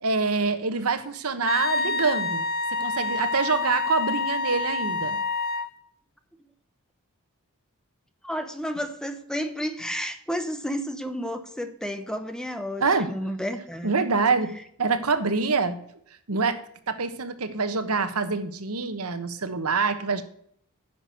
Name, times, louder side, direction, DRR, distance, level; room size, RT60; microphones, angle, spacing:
voice 1, 0.0-2.4 2.7-5.2 12.8-13.1 13.8-15.8 16.3-20.2, right 4 dB, 80° right, 10 dB, 1.2 m, -26 dB
Wind instrument woodwind instrument, 1.5-5.7, left 3 dB, 45° left, 0.7 m, -27 dB
voice 2, 8.2-13.9, equal, 5° left, 8 dB, 0.9 m, -31 dB
10.0 x 6.1 x 6.4 m, 0.66 s
head